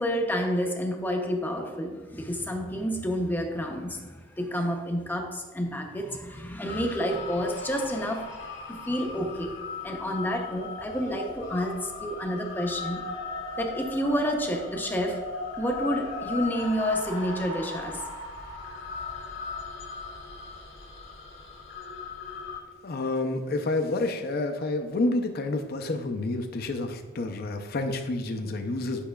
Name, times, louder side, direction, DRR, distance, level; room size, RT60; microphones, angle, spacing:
voice 1, 0.0-9.5 9.8-13.0 13.6-15.3 15.6-18.0, equal, 10° left, 2 dB, 0.6 m, -29 dB
sound 1, 6.7-22.6, left 3 dB, 85° left, 1.3 m, -38 dB
voice 2, 22.8-29.0, left 2 dB, 55° left, 5 dB, 0.5 m, -29 dB
8.6 x 5.5 x 2.3 m, 1.4 s
head